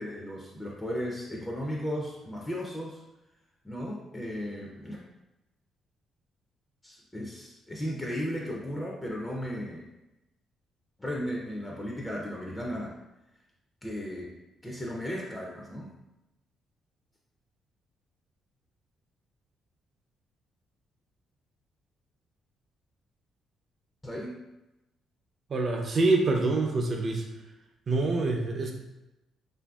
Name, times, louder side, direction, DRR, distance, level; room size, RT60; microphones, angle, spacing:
voice 1, 0.0-3.0 3.6-5.0 6.8-9.8 11.0-12.9 13.8-14.3 14.6-15.9 24.0-24.4, equal, 15° left, -2 dB, 0.4 m, -35 dB
voice 2, 25.5-27.3 27.9-28.7, right 3 dB, 45° right, 2 dB, 0.5 m, -26 dB
2.7 x 2.5 x 2.3 m, 0.97 s
cardioid pair, 90°, 0 cm